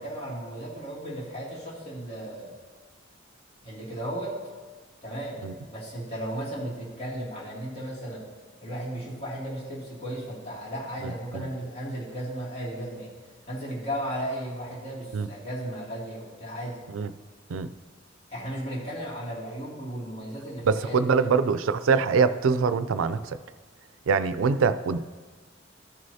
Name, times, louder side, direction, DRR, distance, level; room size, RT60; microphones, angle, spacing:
voice 1, 0.0-2.5 3.6-4.4 5.0-8.3 8.6-13.1 13.5-16.8 18.3-21.3, right 1 dB, 35° left, -6 dB, 2.6 m, -35 dB
voice 2, 11.0-11.4 15.1-15.3 16.9-17.1 17.5-17.7 20.6-23.4 24.1-25.0, right 5 dB, 85° right, 13 dB, 0.4 m, -24 dB
14.0 x 6.3 x 2.8 m, 1.4 s
head